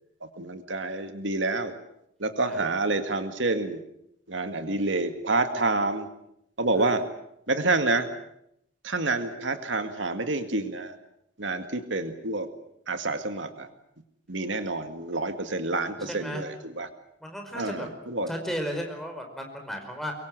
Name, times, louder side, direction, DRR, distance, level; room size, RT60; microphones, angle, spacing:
voice 1, 0.4-1.7 2.2-3.8 4.3-6.1 6.6-7.0 7.5-8.1 8.8-10.9 11.4-12.5 12.9-13.7 14.3-16.9 17.6-18.3, right 2 dB, 80° right, 8 dB, 2.0 m, -28 dB
voice 2, 16.0-16.4 17.2-17.9 18.3-20.1, equal, ahead, 3 dB, 5.0 m, -34 dB
24.5 x 23.0 x 7.9 m, 0.77 s
head